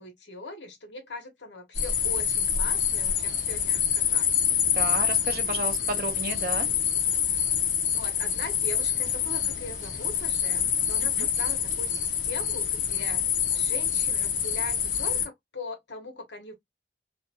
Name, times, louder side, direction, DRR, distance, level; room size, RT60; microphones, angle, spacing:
voice 1, 0.0-4.3 7.8-13.3 13.5-16.5, left 2 dB, 85° left, 1.0 m, -40 dB
sound 1, 1.7-15.3, left 8 dB, 45° left, 0.6 m, -26 dB
voice 2, 4.7-6.7 11.2-11.3, right 2 dB, 55° right, 0.6 m, -31 dB
2.5 x 2.2 x 2.7 m
head